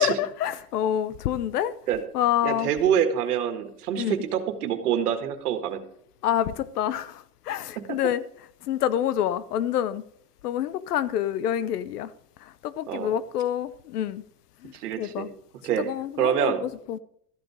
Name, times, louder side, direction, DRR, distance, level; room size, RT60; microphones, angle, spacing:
voice 1, 0.0-1.7 2.1-2.7 4.0-4.2 6.2-8.2 8.6-10.0 10.4-12.1 12.4-14.2 14.6-15.3 15.7-17.0, left 11 dB, 75° left, 0.9 m, -27 dB
voice 2, 2.4-5.8 7.8-8.0 12.9-13.1 14.7-15.3 15.6-16.6, right 9 dB, 75° right, 1.7 m, -26 dB
13.5 x 8.0 x 4.9 m
hypercardioid pair, 105°, 46 cm